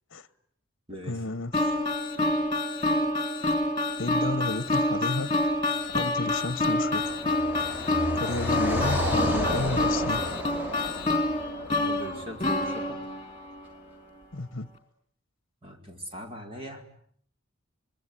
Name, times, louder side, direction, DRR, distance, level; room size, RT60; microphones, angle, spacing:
voice 1, 1.0-1.5 4.0-5.3 5.9-7.2 8.1-10.2 14.3-14.7, left 2 dB, 60° left, 1.1 m, -32 dB
sound 1, 1.5-13.7, left 2 dB, 20° left, 4.0 m, -27 dB
Car passing by, 5.8-13.0, left 1 dB, 10° right, 4.9 m, -32 dB
voice 2, 11.8-13.0 15.6-16.8, right 1 dB, 25° right, 4.6 m, -40 dB
27.0 x 22.0 x 9.8 m
head